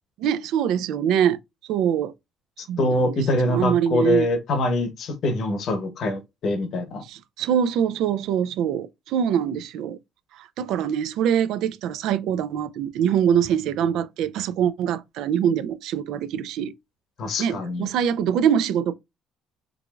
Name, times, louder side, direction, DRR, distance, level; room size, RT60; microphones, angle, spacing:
voice 1, 0.2-1.4 1.7-2.1 2.7-3.1 3.4-4.3 7.0-10.0 10.3-16.7 17.4-18.9, right 9 dB, 75° right, 0.4 m, -24 dB
voice 2, 2.6-7.0 17.2-17.9, left 2 dB, 50° left, 0.9 m, -24 dB
4.7 x 2.6 x 2.3 m
cardioid pair, 135°, 0 cm